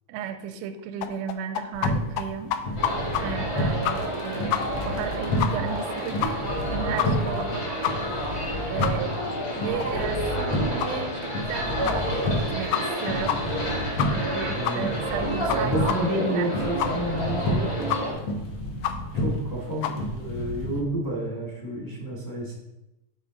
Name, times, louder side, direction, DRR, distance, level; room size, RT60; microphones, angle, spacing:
voice 1, 0.1-2.6 3.2-6.4 6.7-7.7 8.7-9.1 9.5-13.5 14.1-16.5, right 8 dB, 80° right, 9 dB, 1.7 m, -34 dB
sound 1, 1.0-1.9 2.2-2.3 2.5-3.2 3.5-3.6 3.9-4.2 4.5-4.6 4.9-5.0 5.4-5.5 5.8-5.9 6.2-6.6 7.0-7.1 7.4-7.5 7.8-7.9 8.3-8.4 8.8-8.9 9.3-9.4 9.8-9.9 10.3-10.4 10.8-10.9 11.4-11.5 11.9-12.0 12.3-12.4 12.7-13.0 13.3-13.4 13.6-13.7 14.0-14.3 14.6-14.8 15.1-15.2 15.5-15.6 15.9-16.0 16.3-16.4 16.8-16.9 17.3-17.4 17.9-18.0 18.3-18.4 18.8-18.9 19.3-19.4 19.8-19.9, left 12 dB, 80° left, 1.8 m, -27 dB
sound 2, 1.7-20.8, left 1 dB, 65° left, 1.3 m, -31 dB
sound 3, 2.8-18.1, equal, 40° left, 3.2 m, -30 dB
voice 2, 14.6-14.9 15.5-18.3 19.1-22.5, right 1 dB, 10° left, -4 dB, 1.0 m, -30 dB
7.4 x 4.9 x 4.0 m, 0.90 s
omnidirectional pair, 3.4 m